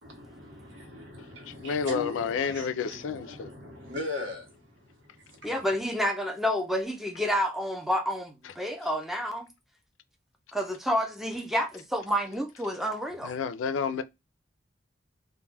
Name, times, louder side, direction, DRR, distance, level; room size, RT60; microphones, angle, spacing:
voice 1, 0.0-5.5 13.1-13.4, left 2 dB, 70° right, 0.9 m, -40 dB
voice 2, 1.5-3.5 8.4-8.5 13.2-14.0, left 6 dB, 85° left, 0.3 m, -30 dB
voice 3, 5.4-9.5 10.5-13.3, equal, ahead, 0.4 m, -29 dB
2.2 x 2.1 x 3.2 m
head